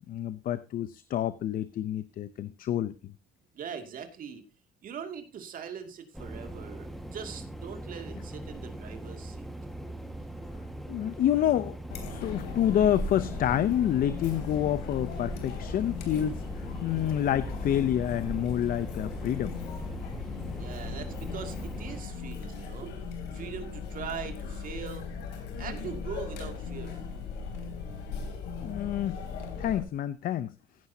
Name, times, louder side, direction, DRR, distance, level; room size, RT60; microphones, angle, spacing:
voice 1, 0.1-2.9 10.9-11.8 12.1-19.6 28.6-29.2 29.6-30.5, left 11 dB, 55° left, 14 dB, 0.7 m, -28 dB
voice 2, 3.5-4.4 4.8-9.5 20.6-23.1 23.3-25.1 25.6-27.0, right 7 dB, 55° right, 6 dB, 2.5 m, -41 dB
sound 1, 6.1-22.0, right 1 dB, ahead, 1.6 m, -40 dB
Chatter, 11.9-29.8, left 5 dB, 85° left, 3.4 m, -38 dB
16.0 x 9.8 x 2.8 m, 0.28 s
cardioid pair, 110°, 17 cm